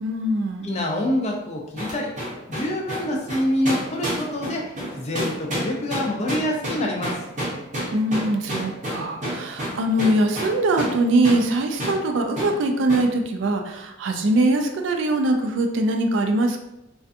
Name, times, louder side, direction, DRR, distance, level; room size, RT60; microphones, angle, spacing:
voice 1, 0.0-0.7 7.9-16.6, right 1 dB, 65° right, 5 dB, 0.3 m, -22 dB
voice 2, 0.6-2.1 2.5-7.2, left 1 dB, 30° left, 0 dB, 0.4 m, -26 dB
sound 1, 1.8-11.0 11.2-11.5 11.8-12.0 12.4-12.6 12.9-13.1, equal, 35° right, 0.7 m, -29 dB
2.5 x 2.3 x 2.4 m, 0.93 s
head